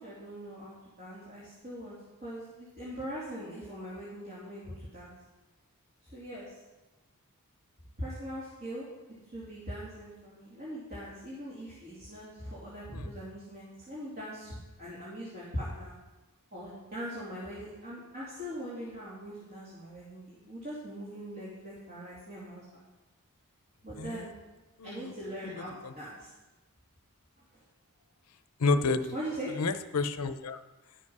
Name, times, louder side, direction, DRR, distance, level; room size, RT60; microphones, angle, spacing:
voice 1, 0.0-1.9 2.2-5.1 6.0-6.6 8.0-8.9 9.3-15.9 16.5-22.8 23.8-24.4 24.8-26.3 27.5-27.6 29.1-29.5, equal, 45° right, -9 dB, 2.8 m, -41 dB
voice 2, 24.0-24.3 24.8-25.1 25.4-25.9 28.6-29.1 29.5-30.6, left 3 dB, 90° left, 10 dB, 0.7 m, -30 dB
11.5 x 7.5 x 5.5 m, 1.1 s
head